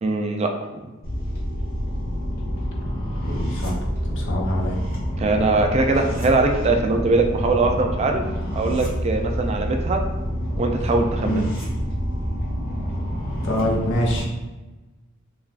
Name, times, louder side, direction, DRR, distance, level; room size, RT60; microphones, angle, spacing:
voice 1, 0.0-0.8 5.2-8.2 8.5-10.0 10.6-11.4, right 3 dB, 35° right, 4 dB, 0.3 m, -21 dB
sound 1, 1.0-14.2, equal, 50° left, 1.0 m, -27 dB
voice 2, 3.2-4.8 11.2-11.4 13.4-14.3, equal, 65° left, -1 dB, 0.6 m, -25 dB
3.3 x 2.3 x 2.4 m, 1.2 s
head